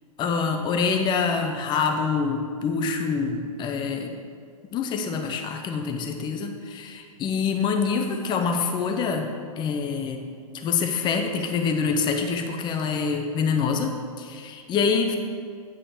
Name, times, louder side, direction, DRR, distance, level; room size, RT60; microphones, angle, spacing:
voice 1, 0.2-4.2 4.7-9.3 9.6-10.2 10.5-15.2, left 5 dB, 25° left, 4 dB, 0.7 m, -26 dB
9.1 x 3.6 x 6.7 m, 2.1 s
hypercardioid pair, 115°, 18 cm